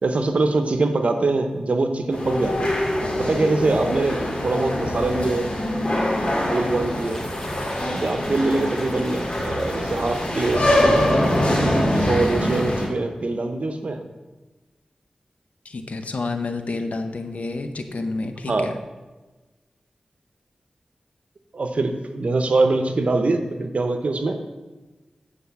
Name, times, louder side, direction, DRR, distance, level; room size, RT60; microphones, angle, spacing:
voice 1, 0.0-2.7 3.2-5.5 6.5-7.2 7.9-11.1 11.8-14.0 18.5-18.7 21.5-24.4, right 2 dB, 65° right, 6 dB, 0.9 m, -23 dB
sound 1, 2.1-12.9, left 1 dB, 50° left, 2.4 m, -23 dB
sound 2, 7.1-11.5, equal, 15° left, 1.3 m, -38 dB
voice 2, 15.6-18.8, left 3 dB, 75° left, 6 dB, 0.9 m, -29 dB
8.3 x 4.9 x 7.0 m, 1.2 s
wide cardioid pair, 65°, 2 cm